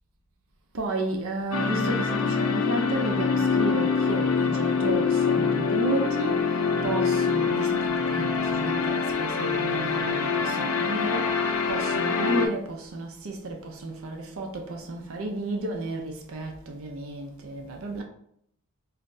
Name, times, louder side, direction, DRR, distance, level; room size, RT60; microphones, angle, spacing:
voice 1, 0.7-6.3 6.8-11.4 11.7-18.0, right 2 dB, 65° right, 0.5 m, -32 dB
sound 1, 1.5-12.5, left 5 dB, 80° left, 0.5 m, -25 dB
5.5 x 2.0 x 2.6 m
head